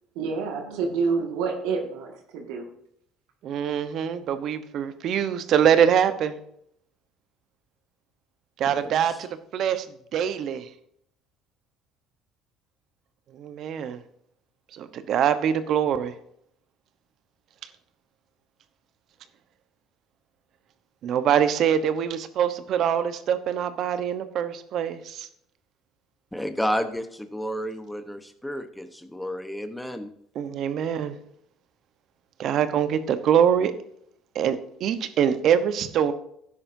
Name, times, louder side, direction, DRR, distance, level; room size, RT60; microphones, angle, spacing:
voice 1, 0.2-2.7, right 5 dB, 80° right, 2 dB, 1.9 m, -28 dB
voice 2, 3.4-6.4 8.6-9.9 10.1-10.7 13.3-14.0 14.7-16.1 21.0-25.3 30.3-31.2 32.4-33.7 34.3-36.1, right 8 dB, 60° right, 11 dB, 1.0 m, -24 dB
voice 3, 8.7-9.2 26.3-30.1, equal, 5° left, 8 dB, 1.0 m, -31 dB
12.0 x 9.8 x 2.7 m, 0.71 s
supercardioid pair, 80°, 0 cm